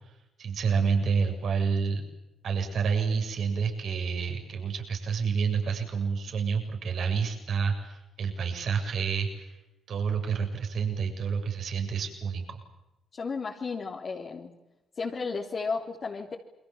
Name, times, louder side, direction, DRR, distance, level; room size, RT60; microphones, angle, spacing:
voice 1, 0.4-2.0 2.4-9.6 9.9-12.6, right 6 dB, 65° right, 4 dB, 7.5 m, -29 dB
voice 2, 13.1-14.5 15.0-16.3, left 4 dB, 45° left, -2 dB, 3.5 m, -33 dB
29.5 x 23.0 x 7.3 m, 0.93 s
cardioid pair, 90°, 0 cm